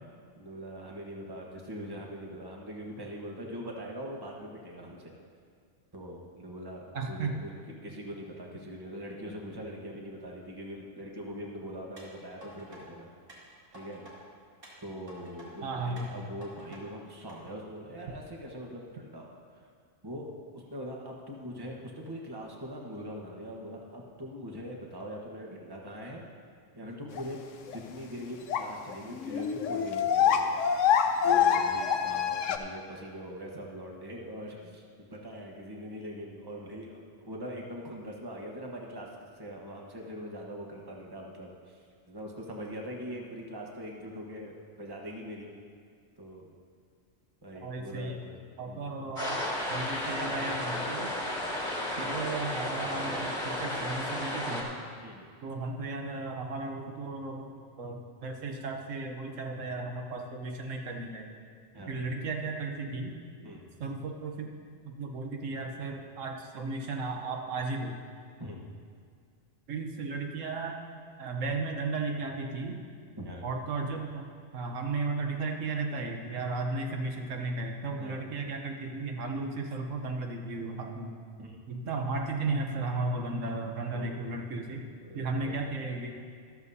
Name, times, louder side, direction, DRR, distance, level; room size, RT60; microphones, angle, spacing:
voice 1, 0.4-5.1 5.9-13.1 13.7-14.1 14.8-19.6 20.0-20.3 20.5-26.2 26.7-27.4 27.7-30.5 31.2-39.1 39.4-41.8 42.1-45.5 46.2-46.5 47.4-49.1 55.0-55.3 61.7-62.0 63.4-63.6 68.4-68.6 73.2-73.5 78.0-78.4 81.4-81.6 83.9-84.4 85.0-85.8, equal, 20° right, -1 dB, 1.2 m, -42 dB
voice 2, 6.9-7.4 15.6-16.1 47.6-48.2 48.6-49.4 49.7-51.1 52.0-54.7 55.4-61.3 61.9-63.1 63.8-64.5 64.8-68.0 69.7-70.8 71.2-72.8 73.4-74.3 74.5-81.1 81.7-84.8 85.1-86.1, right 3 dB, 75° right, 3 dB, 1.3 m, -35 dB
sound 1, 12.0-12.8 13.3-14.2 14.6-15.5 16.0-16.8 17.3-17.4, right 1 dB, 45° right, 2.5 m, -50 dB
sound 2, 27.2-27.3 27.7-27.8 28.5-28.7 28.9-29.0 29.2-32.6, left 8 dB, 75° left, 1.0 m, -25 dB
sound 3, 49.2-54.6, left 1 dB, 35° left, 1.8 m, -33 dB
13.0 x 13.0 x 2.8 m, 2.1 s
omnidirectional pair, 1.3 m